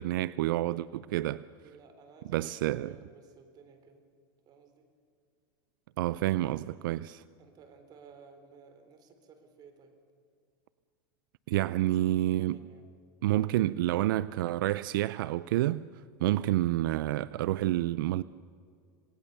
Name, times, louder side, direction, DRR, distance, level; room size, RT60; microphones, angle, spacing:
voice 1, 0.0-1.4 2.3-2.9 6.0-7.2 11.5-12.6 13.2-15.8 16.2-18.2, right 15 dB, 80° right, 0.5 m, -28 dB
voice 2, 1.6-4.0 4.5-4.9 7.4-9.9 12.1-12.8, right 5 dB, 35° right, 3.8 m, -55 dB
27.0 x 18.5 x 6.8 m
supercardioid pair, 130°, 11 cm